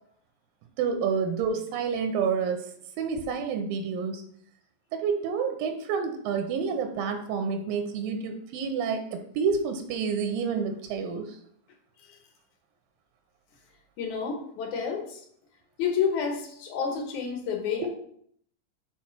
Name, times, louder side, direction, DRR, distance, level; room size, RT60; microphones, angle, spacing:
voice 1, 0.8-2.7 3.0-4.2 4.9-11.4 17.8-17.9, right 6 dB, 85° right, 6 dB, 2.4 m, -29 dB
voice 2, 14.0-15.2 15.8-17.9, left 6 dB, 65° left, 2 dB, 2.3 m, -29 dB
5.8 x 4.6 x 5.8 m, 0.65 s
omnidirectional pair, 4.2 m